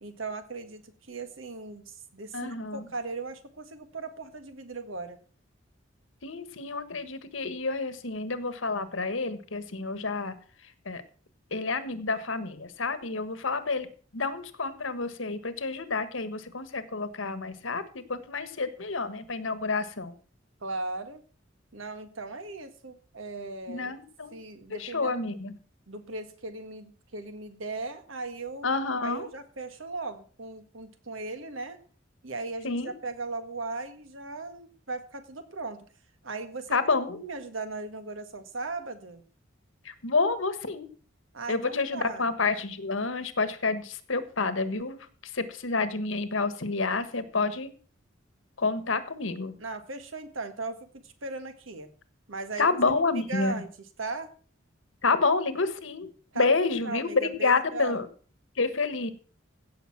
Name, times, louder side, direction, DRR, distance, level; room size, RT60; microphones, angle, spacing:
voice 1, 0.0-5.2 20.6-21.2 21.7-23.9 24.3-25.3 25.9-28.8 29.0-31.8 32.2-35.9 36.2-36.9 37.2-39.2 41.3-42.3 49.6-51.9 52.3-52.7 53.1-53.7 54.0-54.3 56.3-56.5 56.8-58.0, right 3 dB, 85° right, 9 dB, 1.7 m, -38 dB
voice 2, 2.3-2.9 6.2-10.4 10.8-11.0 11.5-20.1 23.7-24.3 24.7-25.5 28.6-29.3 32.6-32.9 36.7-37.2 39.8-40.9 41.5-45.0 45.3-47.7 48.6-49.5 52.6-53.6 55.0-56.1 56.3-58.1 58.6-59.1, left 3 dB, 80° left, 12 dB, 1.4 m, -29 dB
16.0 x 6.9 x 5.9 m, 0.42 s
head